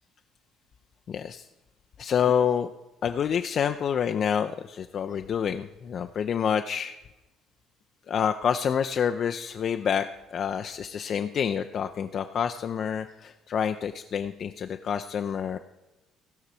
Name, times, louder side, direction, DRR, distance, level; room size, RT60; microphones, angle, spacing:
voice 1, 1.1-1.4 2.0-2.7 3.0-7.0 8.1-15.6, left 8 dB, 45° left, 7 dB, 0.4 m, -28 dB
16.5 x 5.7 x 4.7 m, 1.0 s
figure-of-eight pair, 50°, 0 cm